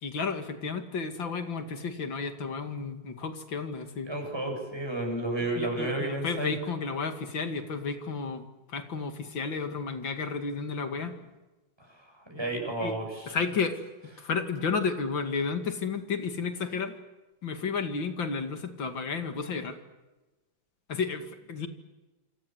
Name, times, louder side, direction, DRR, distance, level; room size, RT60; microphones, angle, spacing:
voice 1, 0.0-4.1 5.5-8.4 8.7-11.2 12.8-12.9 13.3-13.8 14.2-16.9 17.4-19.8 20.9-21.7, left 5 dB, 80° left, 8 dB, 3.0 m, -32 dB
voice 2, 4.1-6.5 11.9-13.4 14.2-14.3, right 2 dB, 10° right, 1 dB, 8.0 m, -32 dB
27.5 x 26.0 x 7.9 m, 1.1 s
omnidirectional pair, 2.1 m